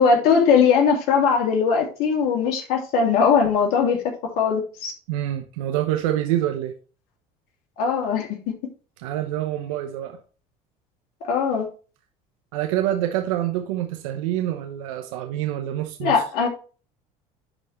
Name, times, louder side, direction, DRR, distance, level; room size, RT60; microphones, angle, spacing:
voice 1, 0.0-4.0 4.4-4.9 7.8-8.4 11.2-11.7 16.0-16.5, left 6 dB, 65° left, 2.8 m, -20 dB
voice 2, 5.1-6.7 9.0-10.2 12.5-16.2, right 12 dB, 85° right, 1.0 m, -26 dB
11.0 x 4.3 x 3.3 m
supercardioid pair, 90°, 17 cm